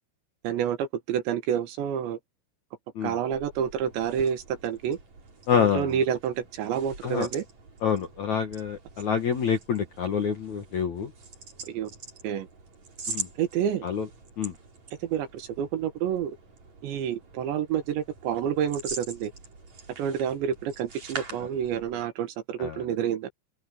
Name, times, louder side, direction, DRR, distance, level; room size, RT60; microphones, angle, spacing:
voice 1, 0.4-2.2 3.0-5.0 5.5-7.5 11.7-11.9 12.2-12.5 13.4-13.9 15.0-16.4 16.8-19.3 20.0-23.3, right 9 dB, 70° right, 3.7 m, -29 dB
sound 1, 3.2-22.1, right 4 dB, 35° right, 6.3 m, -44 dB
voice 2, 5.5-5.9 7.0-7.3 7.8-11.1 13.1-13.3 13.8-14.1 14.4-14.5 22.6-22.8, left 7 dB, 60° left, 2.1 m, -27 dB
open air
omnidirectional pair, 5.5 m